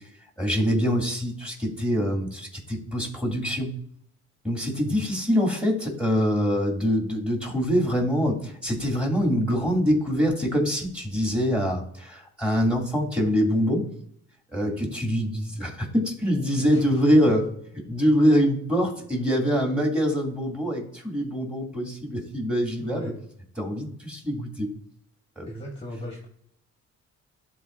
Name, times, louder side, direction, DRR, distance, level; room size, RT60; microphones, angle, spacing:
voice 1, 0.4-3.7 4.4-13.9 14.5-17.4 17.9-23.1 23.6-24.7 25.4-25.5, equal, 5° right, 0 dB, 2.5 m, -24 dB
voice 2, 16.6-17.0 22.8-23.1 25.4-26.3, left 1 dB, 20° left, 0 dB, 1.3 m, -36 dB
12.0 x 4.1 x 2.6 m, 0.68 s
cardioid pair, 90°, 30 cm